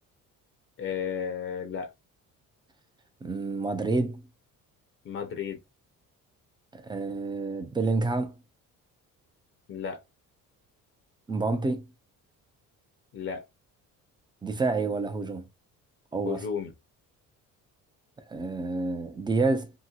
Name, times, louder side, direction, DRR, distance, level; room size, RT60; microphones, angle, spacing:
voice 1, 0.8-1.9 5.0-5.6 9.7-10.0 13.1-13.4 16.2-16.7, left 7 dB, 40° left, 0.5 m, -33 dB
voice 2, 3.2-4.2 6.7-8.3 11.3-11.9 14.4-15.5 16.1-16.5 18.3-19.7, right 3 dB, 15° right, 0.3 m, -28 dB
2.9 x 2.8 x 2.3 m
cardioid pair, 165°, 33 cm